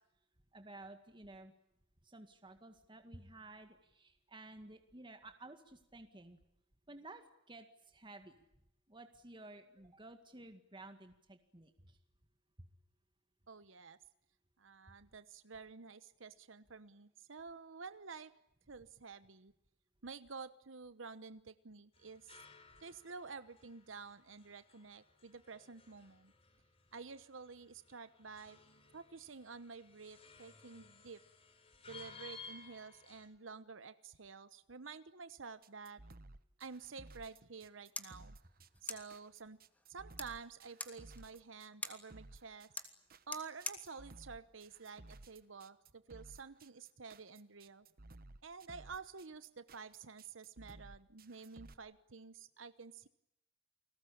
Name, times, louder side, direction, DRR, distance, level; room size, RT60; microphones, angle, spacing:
voice 1, 0.5-1.5 2.0-6.4 6.9-8.4 8.9-12.0 12.6-12.7, right 2 dB, 25° right, 6 dB, 2.0 m, -54 dB
voice 2, 13.5-14.0 14.6-18.3 18.7-19.5 20.0-22.3 22.8-26.3 26.9-28.6 28.9-31.2 31.9-36.0 36.6-38.4 38.8-39.6 39.9-42.7 43.3-47.9 48.4-53.1, right 5 dB, 75° right, 13 dB, 1.0 m, -50 dB
sound 1, 21.9-33.3, left 4 dB, 30° left, 4.3 m, -58 dB
sound 2, 35.6-51.7, right 2 dB, 50° right, 1.2 m, -56 dB
sound 3, 37.5-45.6, left 2 dB, 10° left, 3.0 m, -50 dB
29.5 x 20.5 x 8.7 m, 0.80 s
head